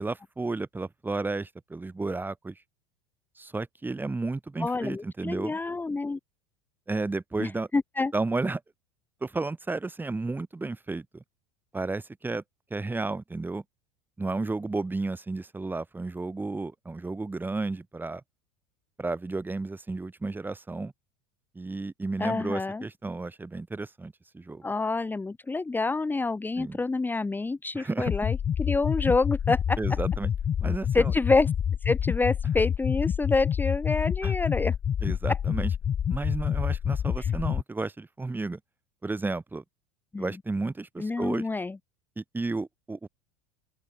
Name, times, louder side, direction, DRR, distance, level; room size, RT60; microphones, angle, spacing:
voice 1, 0.0-2.5 3.4-5.6 6.9-7.7 8.1-8.6 9.2-11.2 11.7-12.4 12.7-13.6 14.2-18.2 19.0-20.9 21.5-24.6 26.6-26.8 27.7-28.1 29.8-30.3 30.6-31.1 34.2-34.3 35.0-35.7 36.1-38.6 39.0-39.6 40.2-41.5 42.2-43.1, right 3 dB, 10° right, 2.8 m, -32 dB
voice 2, 4.6-6.2 7.4-8.1 22.2-22.9 24.6-30.0 30.9-31.5 31.8-34.7 35.3-35.4 37.2-37.3 40.1-40.4 41.0-41.8, left 3 dB, 10° left, 1.4 m, -27 dB
sound 1, 28.1-37.6, left 8 dB, 30° left, 1.7 m, -28 dB
open air
figure-of-eight pair, 75°, 17 cm